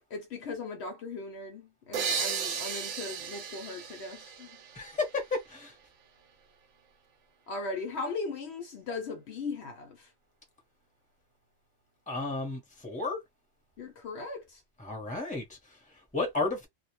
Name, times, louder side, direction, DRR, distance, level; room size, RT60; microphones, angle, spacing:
voice 1, 0.1-4.5 7.5-10.1 13.8-14.6, left 3 dB, 65° left, 0.8 m, -38 dB
sound 1, 1.9-5.5, right 6 dB, 65° right, 0.8 m, -35 dB
voice 2, 4.7-5.7 12.1-13.2 14.8-16.7, left 3 dB, 5° left, 0.8 m, -33 dB
2.2 x 2.2 x 2.9 m
omnidirectional pair, 1.3 m